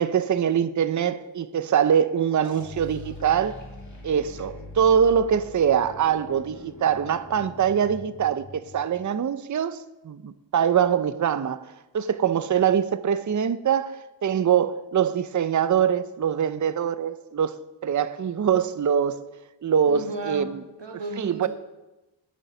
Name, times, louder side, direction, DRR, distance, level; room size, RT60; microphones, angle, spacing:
voice 1, 0.0-3.6 4.0-11.6 11.9-19.2 19.6-20.6 21.2-21.5, right 8 dB, 45° right, 0.5 m, -23 dB
sound 1, 2.4-9.0, left 1 dB, 40° left, 2.6 m, -42 dB
voice 2, 19.9-21.5, right 3 dB, 70° right, 1.4 m, -35 dB
9.6 x 8.8 x 5.9 m
wide cardioid pair, 90°, 45 cm